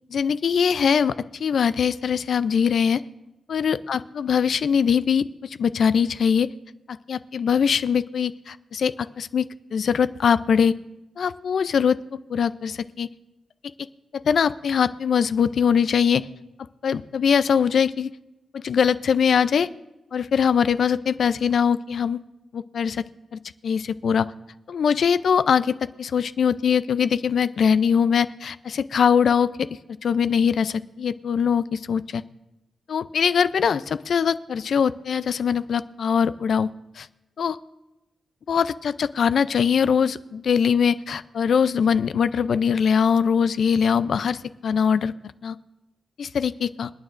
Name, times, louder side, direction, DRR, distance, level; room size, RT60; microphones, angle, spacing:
voice 1, 0.1-1.1 1.4-3.0 3.5-6.5 6.9-10.7 11.2-12.0 12.3-13.1 14.1-16.3 16.8-18.1 18.5-19.7 20.1-22.2 22.5-23.0 23.3-24.3 24.7-29.7 30.0-32.2 32.9-36.7 37.0-37.1 37.4-37.6 38.5-45.1 45.4-45.6 46.2-46.9, left 7 dB, 70° left, 14 dB, 0.4 m, -22 dB
27.5 x 9.4 x 2.5 m, 0.98 s
cardioid pair, 95°, 0 cm